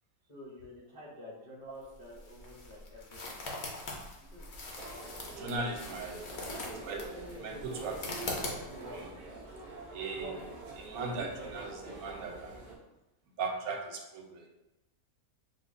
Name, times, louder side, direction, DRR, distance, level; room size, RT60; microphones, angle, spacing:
voice 1, 0.3-3.4 4.3-4.5 6.4-6.7 10.9-11.0, left 1 dB, 35° left, -8 dB, 0.6 m, -49 dB
sound 1, 1.8-9.0, left 2 dB, 55° left, 0.8 m, -42 dB
sound 2, 4.8-12.8, right 2 dB, 60° right, 0.4 m, -45 dB
voice 2, 5.4-6.5 6.8-7.0 7.4-9.2 9.9-10.4 10.7-12.6 13.4-14.5, right 3 dB, 80° right, 1 dB, 1.1 m, -39 dB
5.2 x 2.1 x 2.5 m, 1.0 s
omnidirectional pair, 1.5 m